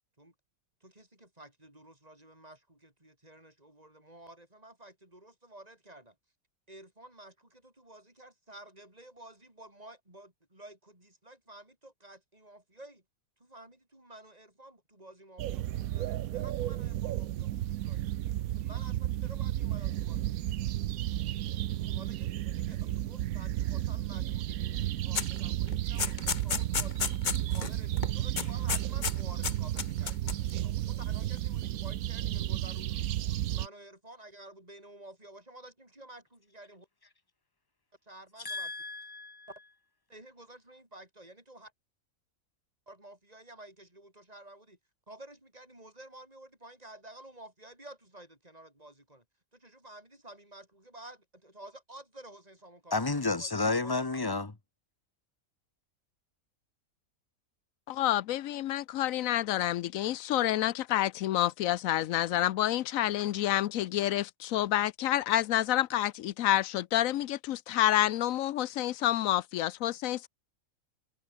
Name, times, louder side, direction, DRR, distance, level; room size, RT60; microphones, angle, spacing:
voice 1, 0.8-6.2 6.7-13.0 13.4-18.0 18.5-20.4 21.8-27.1 27.5-33.1 33.5-36.9 38.0-38.7 39.5-39.6 40.1-41.7 42.9-44.8 45.1-49.2 49.5-53.6 53.8-54.2, right 1 dB, 25° right, 7.4 m, -52 dB
sound 1, 15.4-33.7, right 13 dB, 80° right, 1.1 m, -33 dB
sound 2, 25.1-25.4 25.7-27.7 28.0-28.1 28.4-29.1 29.4-30.5, left 6 dB, 35° left, 1.0 m, -32 dB
voice 2, 38.4-39.5 52.9-54.5, left 3 dB, 15° left, 1.3 m, -31 dB
voice 3, 57.9-70.3, left 13 dB, 75° left, 1.0 m, -28 dB
omnidirectional pair, 1.5 m